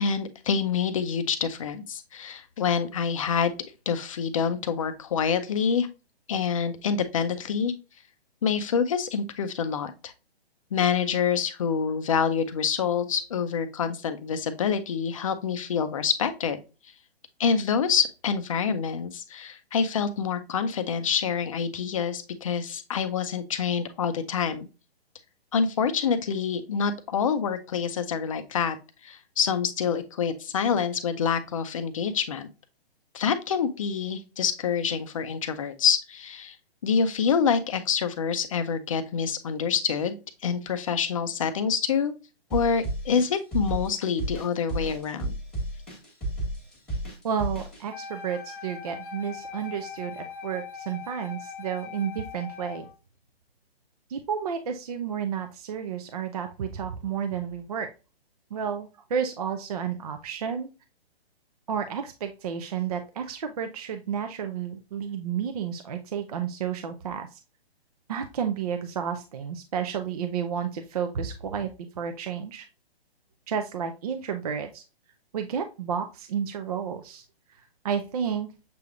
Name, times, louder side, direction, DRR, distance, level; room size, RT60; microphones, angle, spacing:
voice 1, 0.0-3.5 3.9-5.9 6.3-7.7 8.4-10.1 10.7-16.6 17.4-24.7 25.5-28.8 29.0-32.5 33.1-36.6 36.8-40.2 40.4-42.1 42.5-45.3, left 6 dB, 35° left, 10 dB, 0.5 m, -26 dB
sound 1, 42.5-47.8, right 1 dB, ahead, 1.3 m, -32 dB
voice 2, 47.2-52.9 54.1-57.9 58.5-60.7 61.7-67.4 68.1-71.7 72.0-72.7 73.5-74.8 75.3-77.2 77.8-78.5, right 7 dB, 40° right, 6 dB, 0.4 m, -31 dB
Wind instrument woodwind instrument, 47.9-52.9, left 6 dB, 50° left, 0.9 m, -41 dB
6.8 x 3.3 x 2.3 m, 0.31 s
hypercardioid pair, 155°, 32 cm